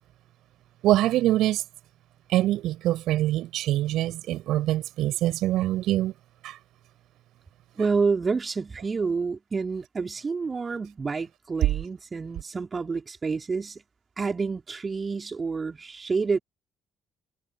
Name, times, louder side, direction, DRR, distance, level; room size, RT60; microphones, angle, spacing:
voice 1, 0.8-1.6 2.3-6.1 6.4-6.6, right 14 dB, 60° right, 5.3 m, -24 dB
voice 2, 7.8-13.8 14.2-16.4, right 4 dB, 30° right, 4.0 m, -28 dB
figure-of-eight pair, 45°, 0 cm